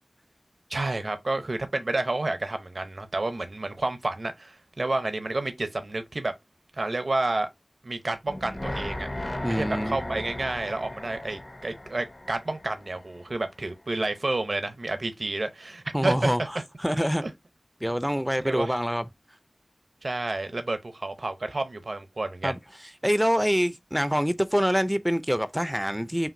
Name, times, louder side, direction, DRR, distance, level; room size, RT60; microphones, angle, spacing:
voice 1, 0.7-6.3 6.8-7.5 7.8-9.1 9.4-16.6 17.2-17.3 18.4-18.8 20.0-22.6, right 2 dB, 70° right, 0.7 m, -30 dB
sound 1, 8.3-13.4 13.7-13.8, left 1 dB, 40° left, 0.7 m, -36 dB
voice 2, 9.4-10.0 15.9-16.4 16.8-17.2 17.8-19.0 22.4-22.6 23.0-26.3, equal, 5° right, 0.4 m, -25 dB
5.7 x 2.5 x 2.6 m
wide cardioid pair, 50°, 0 cm